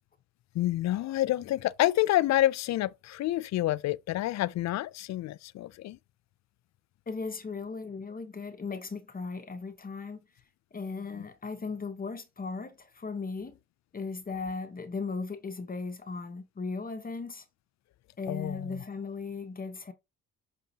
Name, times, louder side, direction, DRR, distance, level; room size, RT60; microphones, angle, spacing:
voice 1, 0.5-6.0 11.1-11.2 18.3-18.8, left 15 dB, 65° left, 0.4 m, -28 dB
voice 2, 7.1-10.2 10.7-13.6 13.9-17.4 18.2-19.9, left 4 dB, 30° left, 1.0 m, -37 dB
6.1 x 5.6 x 2.8 m
cardioid pair, 90°, 30 cm